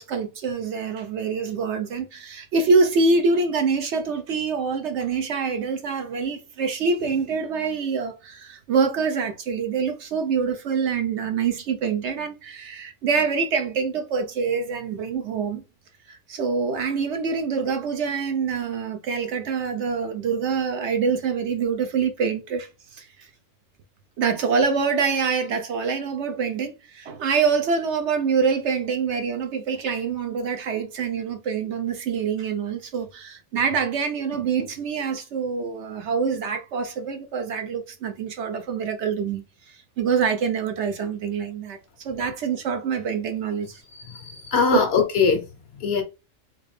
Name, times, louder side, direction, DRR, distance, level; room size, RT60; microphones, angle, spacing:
voice 1, 0.0-15.6 16.1-23.3 24.2-43.8, right 5 dB, 65° right, 0.8 m, -25 dB
voice 2, 43.9-45.5 45.7-46.0, left 5 dB, 60° left, 0.8 m, -22 dB
3.5 x 2.5 x 3.1 m
omnidirectional pair, 1.4 m